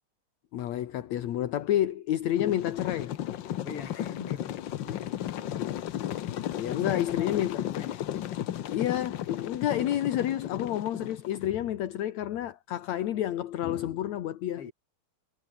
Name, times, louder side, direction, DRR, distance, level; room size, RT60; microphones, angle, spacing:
voice 1, 0.5-3.2 5.6-5.7 6.6-7.7 8.7-14.7, left 12 dB, 70° left, 2.5 m, -29 dB
sound 1, 2.4-11.5, left 11 dB, 90° left, 1.0 m, -34 dB
voice 2, 3.6-5.9 6.6-8.0 14.6-14.7, left 6 dB, 50° left, 3.6 m, -44 dB
omnidirectional pair, 3.3 m